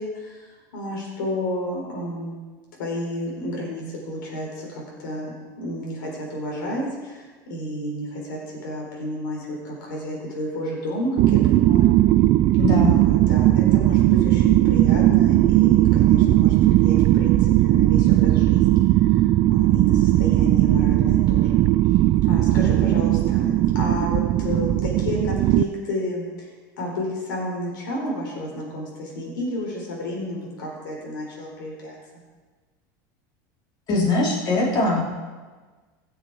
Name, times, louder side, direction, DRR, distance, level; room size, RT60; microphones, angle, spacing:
voice 1, 0.0-2.4 2.8-11.9 12.8-21.6 22.2-26.5 26.8-32.0, left 1 dB, 90° left, -2 dB, 3.9 m, -31 dB
Looping Horror Groaning, 11.2-25.6, right 15 dB, 45° right, 0.3 m, -18 dB
voice 2, 12.6-12.9 33.9-35.1, left 3 dB, 40° left, -2 dB, 3.4 m, -21 dB
17.0 x 7.2 x 4.8 m, 1.4 s
supercardioid pair, 120°, 10 cm